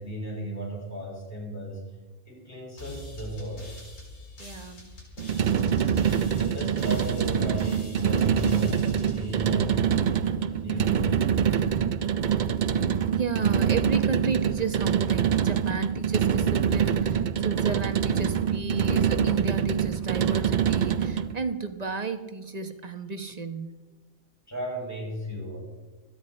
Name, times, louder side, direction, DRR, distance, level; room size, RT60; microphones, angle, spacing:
voice 1, 0.0-2.0 2.2-3.7 6.1-11.5 24.5-25.6, equal, 10° left, -3 dB, 6.7 m, -36 dB
sound 1, 2.8-10.3, left 1 dB, 85° left, 4.3 m, -44 dB
voice 2, 4.4-4.9 13.1-23.8, right 4 dB, 35° right, 8 dB, 1.1 m, -33 dB
sound 2, 5.2-21.4, right 8 dB, 50° right, 0.6 m, -25 dB
26.0 x 10.0 x 4.3 m, 1.3 s
omnidirectional pair, 1.3 m